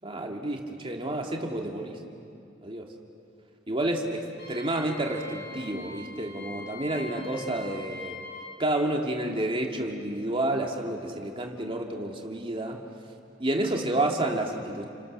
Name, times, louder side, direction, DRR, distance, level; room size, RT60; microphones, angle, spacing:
voice 1, 0.0-2.0 2.6-2.9 3.7-8.2 8.6-12.8 13.4-14.8, right 1 dB, 30° right, 1 dB, 2.6 m, -30 dB
Wind instrument woodwind instrument, 4.4-8.5, left 2 dB, 65° left, 5.8 m, -43 dB
29.5 x 29.5 x 6.7 m, 2.5 s
head